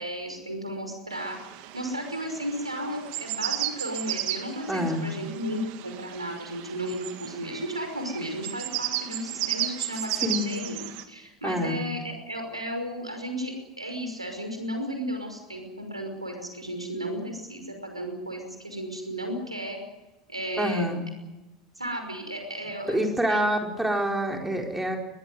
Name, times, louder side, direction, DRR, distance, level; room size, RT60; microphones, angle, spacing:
voice 1, 0.0-1.4 1.7-10.8 11.1-19.8 20.3-20.9 21.8-23.5, equal, 85° right, 5 dB, 5.6 m, -34 dB
sound 1, 1.1-11.0, right 14 dB, 50° right, 2.1 m, -34 dB
voice 2, 4.7-5.1 10.1-10.5 11.4-11.8 20.6-21.1 22.9-25.0, equal, 5° right, 2 dB, 4.7 m, -27 dB
22.5 x 19.0 x 9.4 m, 1.0 s
figure-of-eight pair, 75°, 3 cm